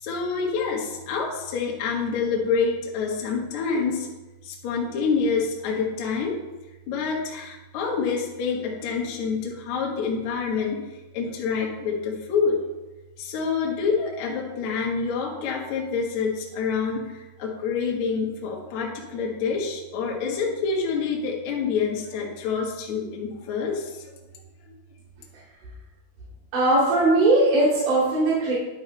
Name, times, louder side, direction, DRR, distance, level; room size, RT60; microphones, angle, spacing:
voice 1, 0.0-4.1 4.4-6.4 6.9-10.8 11.1-12.6 13.2-24.1 24.7-24.8, left 5 dB, 75° left, -2 dB, 1.7 m, -27 dB
voice 2, 26.5-28.5, right 2 dB, 45° right, -11 dB, 3.6 m, -19 dB
11.0 x 5.4 x 3.2 m, 1.1 s
omnidirectional pair, 5.5 m